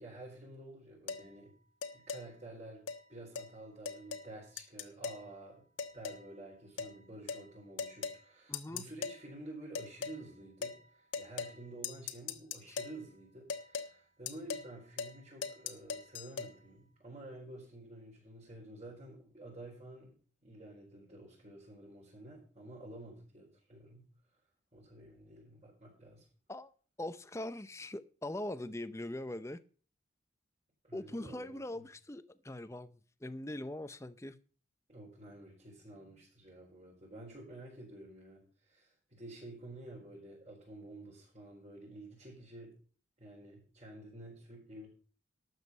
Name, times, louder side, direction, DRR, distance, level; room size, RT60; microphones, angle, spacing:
voice 1, 0.0-1.5 1.9-5.7 5.9-20.1 20.4-24.1 24.7-26.2 30.8-31.6 34.9-42.7 43.2-44.9, right 1 dB, 35° right, -6 dB, 4.7 m, -50 dB
sound 1, 1.1-1.3 1.8-2.2 2.9-3.0 3.4-3.5 3.9-4.3 4.6-5.2 5.8-6.3 6.8-6.9 7.3-7.5 7.8-8.2 8.5-9.2 9.7-10.2 10.6-10.8 11.1-11.6 11.8-13.0 13.5-13.9 14.3-14.7 15.0-15.2 15.4-16.5, left 5 dB, 80° left, 1.3 m, -40 dB
voice 2, 8.5-8.8 12.7-12.8 26.5-26.7 27.0-29.6 30.9-34.4, left 1 dB, 15° left, 13 dB, 0.6 m, -42 dB
12.5 x 8.1 x 5.3 m, 0.41 s
head